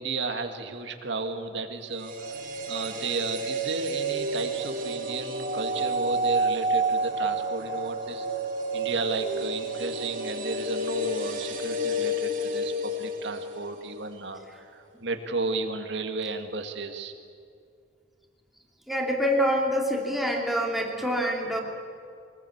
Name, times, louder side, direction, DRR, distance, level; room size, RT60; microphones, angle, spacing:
voice 1, 0.0-2.1 2.7-8.3 8.7-17.1, right 3 dB, 65° right, 6 dB, 2.1 m, -33 dB
sound 1, 1.9-14.0 14.2-14.3, right 1 dB, 45° right, 2.8 m, -30 dB
voice 2, 18.9-21.6, equal, ahead, 0 dB, 3.0 m, -26 dB
24.5 x 20.0 x 8.1 m, 2.3 s
head